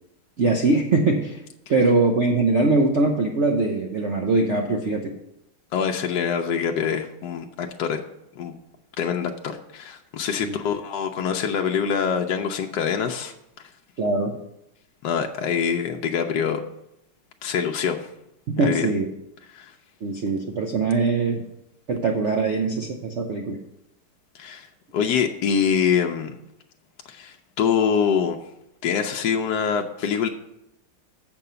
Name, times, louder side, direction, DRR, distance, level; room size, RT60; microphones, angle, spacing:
voice 1, 0.4-1.4 1.7-5.1 10.4-10.6 14.0-14.3 18.5-19.1 20.0-21.4 21.9-23.6, right 3 dB, 85° right, 2 dB, 0.6 m, -22 dB
voice 2, 5.7-8.0 8.4-8.6 9.0-13.3 15.0-16.6 17.4-18.1 18.6-18.9 19.5-19.7 24.3-24.7 24.9-26.4 27.1-28.4 28.8-30.3, left 7 dB, 75° left, 3 dB, 1.0 m, -24 dB
6.9 x 5.9 x 6.7 m, 0.82 s
omnidirectional pair, 2.4 m